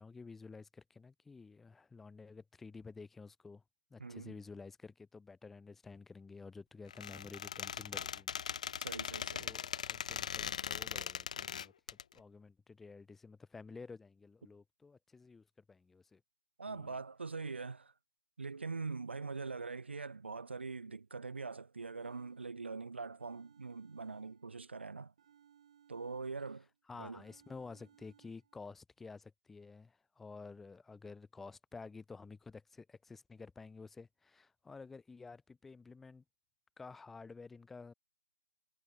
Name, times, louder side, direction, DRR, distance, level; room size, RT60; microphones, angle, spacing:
voice 1, 0.0-3.6 3.9-8.4 9.4-11.7 12.1-16.2 16.7-17.0 26.9-36.2 36.8-37.9, left 4 dB, 5° left, 2.1 m, -52 dB
voice 2, 4.0-4.4 8.8-9.5 16.6-17.9 18.4-25.1 25.9-26.7 27.0-27.2, right 4 dB, 75° right, 1.0 m, -43 dB
Squeak, 6.9-12.0, left 8 dB, 40° left, 0.7 m, -40 dB
sound 1, 22.0-22.8 23.2-24.8 25.2-26.8 27.2-28.6, right 9 dB, 35° right, 5.0 m, -66 dB
hypercardioid pair, 165°, 6 cm